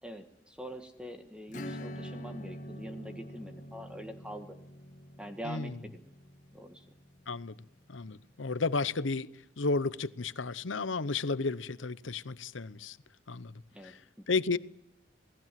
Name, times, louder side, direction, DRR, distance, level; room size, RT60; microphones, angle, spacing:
voice 1, 0.0-4.5 5.2-6.0 6.5-6.9 13.7-14.3, equal, 5° right, 1.6 m, -44 dB
Acoustic guitar / Strum, 1.5-7.7, equal, 40° left, 1.9 m, -45 dB
voice 2, 5.4-5.8 7.3-7.5 7.9-9.3 9.6-13.0 13.3-13.5 13.8-14.0 14.3-14.6, left 4 dB, 90° left, 0.9 m, -32 dB
28.0 x 19.0 x 7.6 m
head